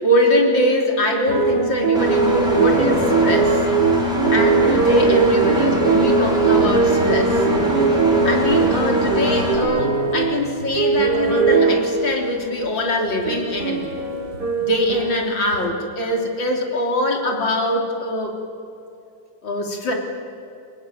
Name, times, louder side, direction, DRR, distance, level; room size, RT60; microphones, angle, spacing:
voice 1, 0.0-3.6 4.3-7.4 8.2-13.9 14.7-18.4 19.4-19.9, left 1 dB, 80° left, 1 dB, 4.0 m, -22 dB
sound 1, 1.3-12.4 12.9-15.7, right 4 dB, 65° right, 3.0 m, -20 dB
Engine, 1.9-9.6, left 2 dB, ahead, 5.9 m, -24 dB
29.5 x 21.5 x 9.2 m, 2.6 s
omnidirectional pair, 2.0 m